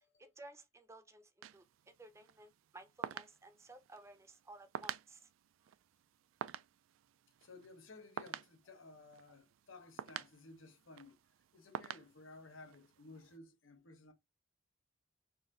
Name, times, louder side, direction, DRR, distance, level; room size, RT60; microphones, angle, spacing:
voice 1, 0.2-5.3, right 2 dB, 15° right, 0.5 m, -56 dB
sound 1, 1.4-13.4, right 9 dB, 85° right, 0.3 m, -49 dB
voice 2, 7.4-11.2 11.5-14.1, left 3 dB, 90° left, 1.0 m, -56 dB
4.1 x 2.6 x 3.8 m
head